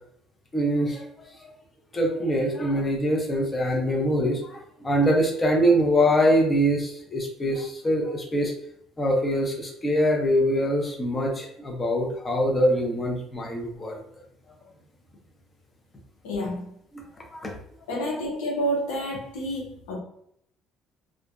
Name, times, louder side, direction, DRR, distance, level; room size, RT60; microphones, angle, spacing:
voice 1, 0.5-1.5 1.9-8.5 9.0-14.0 17.3-17.5, equal, 25° left, 0 dB, 0.7 m, -24 dB
voice 2, 16.2-16.7 17.9-20.0, equal, 90° left, -2 dB, 0.6 m, -29 dB
2.5 x 2.1 x 2.4 m, 0.70 s
supercardioid pair, 75°, 0 cm